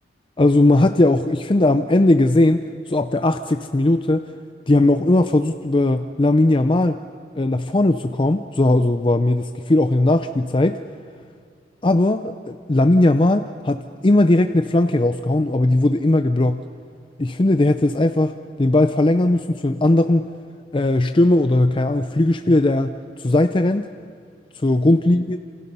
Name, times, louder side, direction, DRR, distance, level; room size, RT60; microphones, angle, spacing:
voice 1, 0.4-4.3 4.7-7.0 7.3-10.8 11.8-16.6 17.2-20.3 20.7-22.9 23.2-23.9 24.6-25.4, left 2 dB, 30° left, 9 dB, 0.5 m, -18 dB
28.0 x 27.5 x 5.5 m, 2.1 s
head